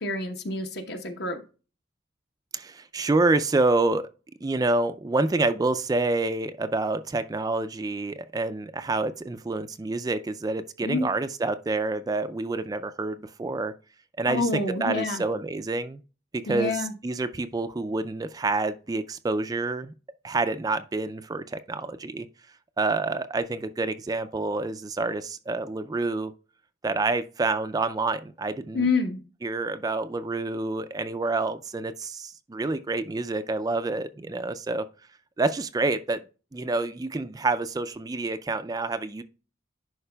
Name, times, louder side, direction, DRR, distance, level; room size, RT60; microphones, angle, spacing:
voice 1, 0.0-1.4 10.8-11.0 14.3-15.2 16.5-16.9 28.7-29.2, left 3 dB, 60° left, 1.0 m, -27 dB
voice 2, 2.5-4.1 4.4-13.7 14.2-16.0 16.3-19.9 20.2-22.3 22.8-26.3 26.8-28.9 29.4-34.9 35.4-36.2 36.5-39.2, right 3 dB, 20° right, 0.3 m, -28 dB
11.0 x 4.8 x 2.2 m
head